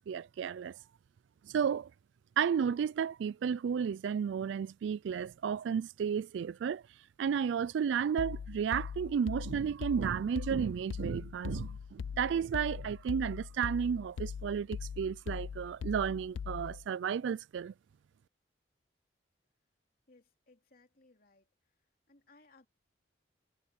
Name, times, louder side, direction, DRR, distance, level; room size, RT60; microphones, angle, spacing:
voice 1, 0.1-0.8 1.4-1.9 2.4-6.8 7.2-17.7, right 7 dB, 70° right, 0.3 m, -33 dB
sound 1, 8.2-16.9, left 6 dB, 80° left, 0.4 m, -41 dB
voice 2, 20.1-21.8 22.1-22.7, left 3 dB, 50° left, 3.1 m, -64 dB
head